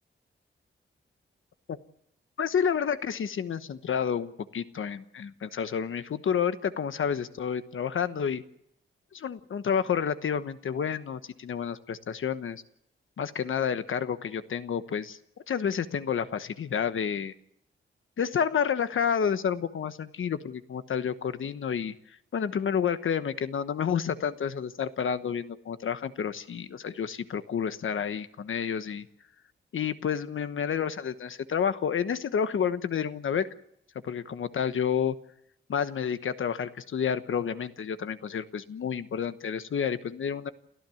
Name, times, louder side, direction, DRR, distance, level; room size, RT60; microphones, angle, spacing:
voice 1, 2.4-8.4 9.1-12.6 13.2-15.2 15.5-17.3 18.2-21.9 22.3-29.1 29.7-33.5 34.0-35.2 35.7-40.5, left 7 dB, 75° left, 11 dB, 1.1 m, -30 dB
29.5 x 14.0 x 7.1 m, 0.74 s
wide cardioid pair, 115°, 21 cm